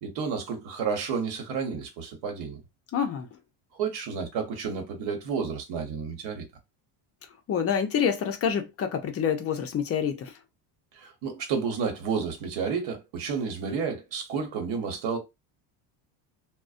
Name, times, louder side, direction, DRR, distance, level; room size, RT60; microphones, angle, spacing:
voice 1, 0.0-2.6 3.8-6.5 10.9-15.2, right 6 dB, 65° right, 1.0 m, -31 dB
voice 2, 2.9-3.3 7.5-10.3, left 7 dB, 35° left, 0.4 m, -27 dB
2.5 x 2.1 x 2.4 m
cardioid pair, 130°, 46 cm